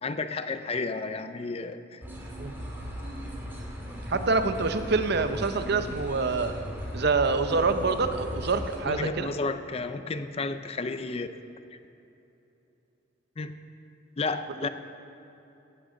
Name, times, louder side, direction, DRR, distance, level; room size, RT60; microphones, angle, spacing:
voice 1, 0.0-2.0 8.8-11.3 13.4-13.6 14.2-14.7, left 3 dB, 30° left, 10 dB, 0.5 m, -32 dB
sound 1, 2.0-8.8, equal, 10° right, 2.3 m, -37 dB
voice 2, 4.1-6.6 6.9-9.3, right 4 dB, 55° right, 9 dB, 0.7 m, -26 dB
16.5 x 12.5 x 3.8 m, 2.9 s
head